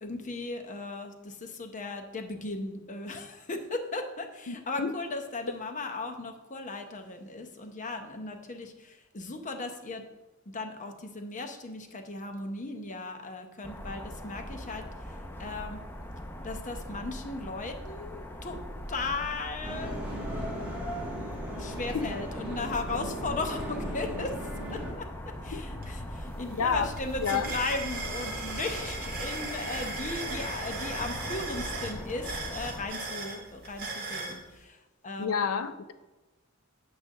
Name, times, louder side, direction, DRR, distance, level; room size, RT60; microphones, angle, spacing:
voice 1, 0.0-10.0 10.5-15.8 16.4-18.6 18.9-20.0 21.6-34.8 35.0-35.3, left 3 dB, 35° left, 0.8 m, -37 dB
voice 2, 4.5-4.9 21.9-22.1 25.5-25.6 26.5-26.9 27.2-27.5 35.2-35.9, left 6 dB, 80° left, 0.6 m, -29 dB
sound 1, 13.6-32.9, equal, 10° left, 0.5 m, -41 dB
sound 2, 19.6-24.9, equal, 5° right, 1.8 m, -37 dB
sound 3, 25.8-25.9 26.2-34.4, right 3 dB, 50° right, 1.5 m, -37 dB
8.7 x 3.4 x 6.5 m
head